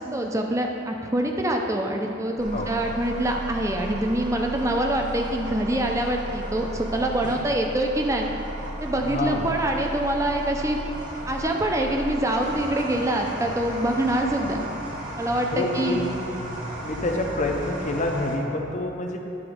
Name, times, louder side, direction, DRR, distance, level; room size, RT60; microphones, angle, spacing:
voice 1, 0.0-8.3 8.8-10.8 11.3-14.6 15.2-16.0, right 1 dB, 15° right, 2 dB, 0.5 m, -25 dB
sound 1, 2.4-18.4, right 1 dB, 40° right, 1.1 m, -35 dB
voice 2, 9.0-9.5 15.5-16.2 16.8-19.2, left 2 dB, 35° left, 2 dB, 0.6 m, -27 dB
9.9 x 3.9 x 5.0 m, 2.9 s
head